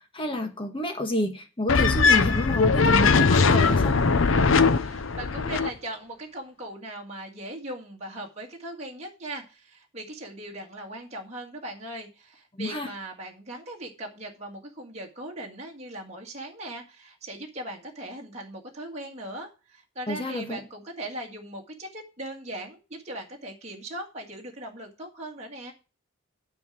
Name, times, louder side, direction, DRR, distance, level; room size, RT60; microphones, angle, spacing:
voice 1, 0.1-4.0 12.5-12.9 20.1-20.6, left 1 dB, 25° left, 1.6 m, -29 dB
sound 1, 1.7-5.7, left 4 dB, 70° left, 0.8 m, -20 dB
voice 2, 4.3-25.7, right 1 dB, 35° right, 1.9 m, -39 dB
9.5 x 4.9 x 7.4 m
head